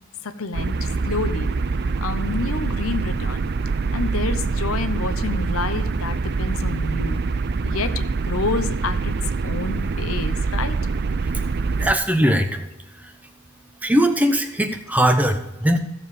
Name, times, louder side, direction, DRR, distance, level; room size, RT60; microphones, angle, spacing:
voice 1, 0.2-1.6 2.0-3.5 3.9-7.2 7.6-9.1 9.4-10.8, left 3 dB, 80° left, 10 dB, 0.9 m, -28 dB
sound 1, 0.5-11.9, right 4 dB, 50° right, 0.5 m, -24 dB
voice 2, 11.8-12.6 13.8-15.8, equal, 5° right, 6 dB, 0.9 m, -19 dB
16.0 x 7.3 x 4.9 m, 0.97 s
head